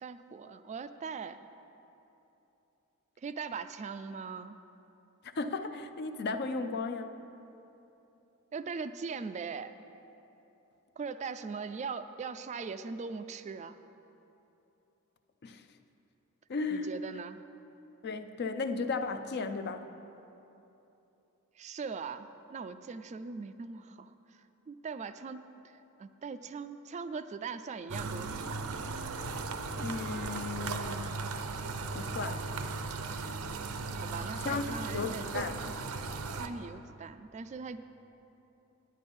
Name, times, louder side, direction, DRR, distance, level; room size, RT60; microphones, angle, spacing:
voice 1, 0.0-1.4 3.2-4.6 8.5-9.8 11.0-13.8 16.7-17.4 21.6-24.1 24.7-28.6 34.0-35.2 35.7-35.8 36.3-37.8, right 5 dB, 35° right, 11 dB, 0.3 m, -40 dB
voice 2, 5.2-7.2 15.4-15.6 16.5-16.9 18.0-19.9 29.8-31.1 31.9-32.4 34.4-35.6, left 4 dB, 50° left, 9 dB, 0.5 m, -35 dB
sound 1, 27.9-36.5, right 3 dB, 85° right, 0.6 m, -37 dB
9.5 x 9.3 x 5.3 m, 3.0 s
head